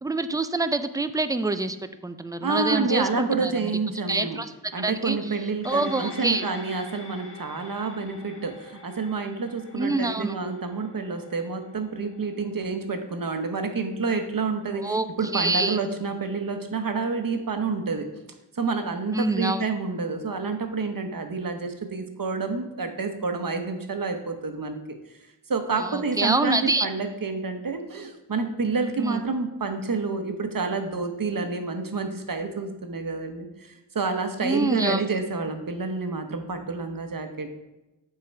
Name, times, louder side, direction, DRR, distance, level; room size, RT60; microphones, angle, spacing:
voice 1, 0.0-1.8 2.0-3.7 4.1-5.3 5.6-6.4 9.7-10.3 14.8-15.1 15.3-15.8 19.1-19.6 25.8-26.9 29.0-29.2 34.4-35.0, right 2 dB, 10° right, 11 dB, 0.4 m, -26 dB
voice 2, 2.4-4.4 4.7-18.1 18.5-24.8 25.5-37.5, right 4 dB, 45° right, 6 dB, 1.0 m, -29 dB
sound 1, 5.6-14.3 14.7-14.8, left 3 dB, 25° left, 1.5 m, -47 dB
7.2 x 3.8 x 4.5 m, 1.0 s
cardioid pair, 40°, 46 cm